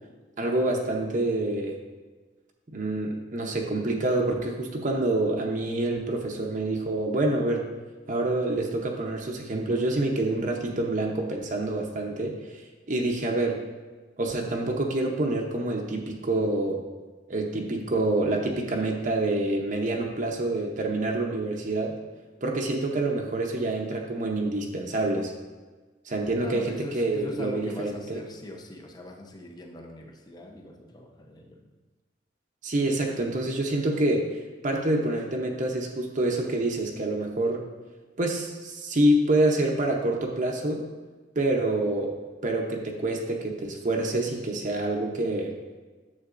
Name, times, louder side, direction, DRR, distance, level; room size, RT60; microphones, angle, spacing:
voice 1, 0.4-1.8 2.7-7.7 8.1-12.6 12.9-13.6 14.2-16.8 17.3-22.0 22.4-25.3 26.0-28.2 32.6-37.6 38.2-40.9 41.4-45.5, right 2 dB, 45° right, 1 dB, 0.8 m, -27 dB
voice 2, 26.4-31.7, left 2 dB, 20° left, 2 dB, 0.7 m, -41 dB
9.6 x 7.2 x 2.6 m, 1.3 s
head